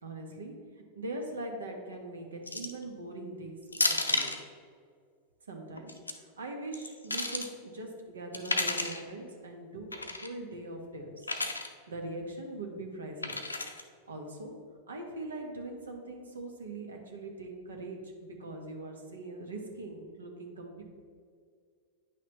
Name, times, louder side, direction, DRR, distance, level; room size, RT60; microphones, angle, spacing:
voice 1, 0.0-4.4 5.5-11.3 11.9-13.4 14.1-14.5 14.9-20.8, right 2 dB, 70° right, 2 dB, 1.0 m, -42 dB
sound 1, 2.5-2.8 3.7-4.4 5.8-6.1 6.7-7.5 8.3-9.0 9.9-10.3 11.2-11.7 13.2-13.8, left 2 dB, 80° left, 0.5 m, -32 dB
9.4 x 5.8 x 3.1 m, 2.1 s
figure-of-eight pair, 90°, 0 cm